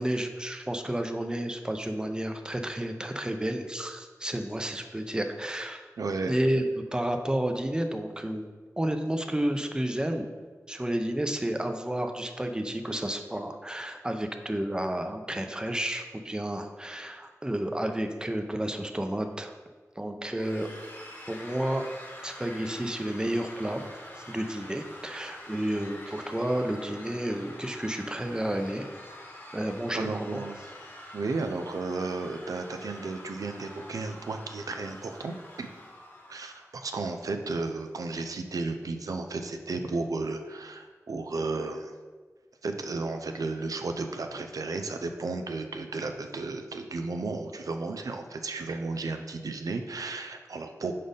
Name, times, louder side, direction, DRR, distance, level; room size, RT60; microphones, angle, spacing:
voice 1, 0.0-5.9 6.3-8.4 8.8-10.3 10.7-19.5 20.0-20.7 21.3-21.9 22.2-23.8 24.3-28.9 29.5-30.4, right 1 dB, 15° right, 5 dB, 0.6 m, -31 dB
voice 2, 6.0-6.5 29.9-30.7 31.1-35.7 36.3-41.9 42.6-50.9, right 3 dB, 90° right, 6 dB, 0.4 m, -33 dB
sound 1, 20.4-36.7, left 1 dB, 35° left, 1.3 m, -46 dB
5.0 x 4.1 x 5.2 m, 1.4 s
cardioid pair, 45°, 6 cm